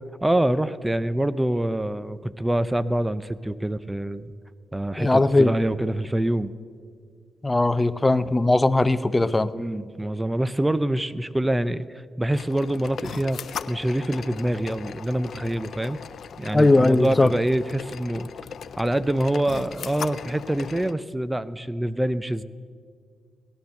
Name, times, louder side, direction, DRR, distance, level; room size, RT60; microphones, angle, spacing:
voice 1, 0.2-4.3 4.7-6.5 9.5-13.4 13.7-16.0 16.4-18.3 18.8-22.4, right 1 dB, 15° right, 15 dB, 0.6 m, -25 dB
voice 2, 5.0-5.5 7.4-9.5 16.5-17.3, left 2 dB, 20° left, 14 dB, 0.7 m, -19 dB
sound 1, 12.4-20.9, left 7 dB, 70° left, 0.4 m, -38 dB
18.0 x 10.5 x 6.5 m, 2.1 s
supercardioid pair, 50°, 0 cm